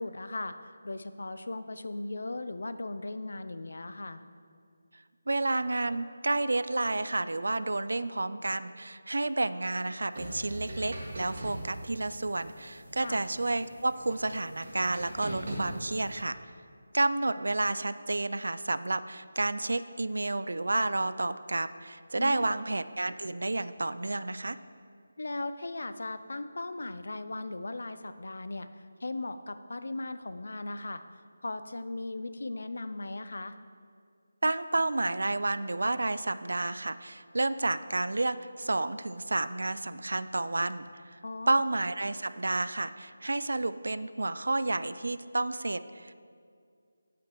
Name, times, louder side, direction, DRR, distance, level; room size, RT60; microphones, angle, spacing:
voice 1, 0.0-4.2 13.0-13.2 22.2-22.5 25.2-28.7 29.0-31.0 31.4-33.6 41.2-41.6, left 2 dB, 65° left, 11 dB, 0.5 m, -37 dB
voice 2, 5.3-16.4 16.9-24.6 34.4-41.2 41.5-46.1, right 2 dB, 80° right, 13 dB, 0.4 m, -30 dB
sound 1, 10.1-16.2, right 1 dB, 40° right, 1.9 m, -42 dB
15.5 x 5.9 x 3.1 m, 2.2 s
figure-of-eight pair, 180°, 0 cm